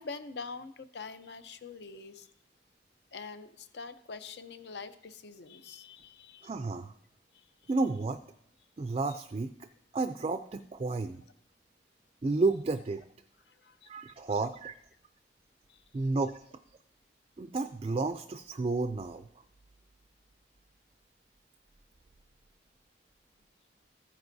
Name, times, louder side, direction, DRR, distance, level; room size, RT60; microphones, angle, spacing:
voice 1, 0.0-2.3 3.1-6.5 7.3-7.4 13.5-13.9 15.7-15.8, left 4 dB, 65° left, 11 dB, 0.7 m, -45 dB
voice 2, 6.4-6.9 7.7-8.2 8.8-9.7 9.9-11.2 12.2-13.1 13.9-14.8 15.9-16.4 17.4-19.3, right 3 dB, 30° right, 9 dB, 0.3 m, -31 dB
14.0 x 9.5 x 2.7 m, 0.73 s
head